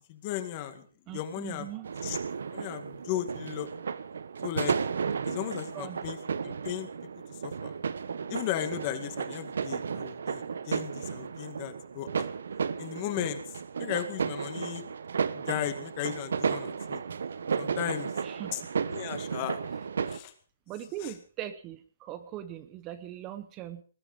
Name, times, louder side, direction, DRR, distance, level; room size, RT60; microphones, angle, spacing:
voice 1, 0.0-1.7 2.0-2.2 2.5-3.7 4.4-4.8 5.2-6.2 6.4-6.9 7.4-7.7 8.3-12.3 12.8-14.8 15.3-17.0 17.6-18.1 18.5-18.6 18.9-19.6 20.1-20.3 21.0-21.1, left 12 dB, 30° left, 9 dB, 2.0 m, -36 dB
voice 2, 1.1-1.9 5.7-6.0 18.2-18.5 20.7-23.8, right 12 dB, 20° right, 11 dB, 0.8 m, -40 dB
sound 1, 1.8-20.2, right 6 dB, 75° right, 1.1 m, -34 dB
20.5 x 12.0 x 5.2 m, 0.41 s
hypercardioid pair, 165°, 0 cm